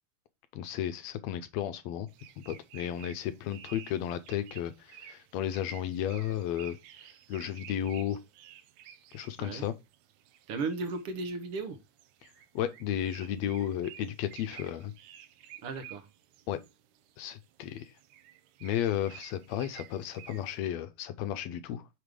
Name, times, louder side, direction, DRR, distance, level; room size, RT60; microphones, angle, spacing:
voice 1, 0.5-2.1 2.5-6.8 7.3-8.2 9.1-9.7 12.2-14.9 16.5-16.6 17.2-17.9 18.6-21.8, left 10 dB, 75° left, 1.6 m, -33 dB
sound 1, 2.1-20.6, right 11 dB, 85° right, 2.1 m, -53 dB
voice 2, 10.5-11.8 15.6-16.1, right 4 dB, 65° right, 1.4 m, -35 dB
5.8 x 5.1 x 4.7 m
omnidirectional pair, 3.4 m